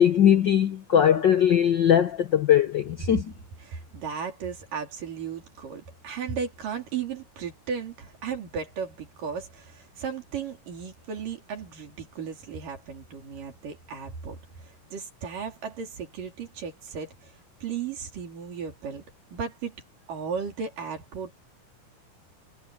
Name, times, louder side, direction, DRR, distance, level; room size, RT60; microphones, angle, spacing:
voice 1, 0.0-3.3, left 9 dB, 85° left, 1.0 m, -20 dB
voice 2, 3.6-17.3 17.6-19.0 19.3-19.8 20.1-21.3, right 6 dB, 85° right, 5.1 m, -35 dB
omnidirectional pair, 3.7 m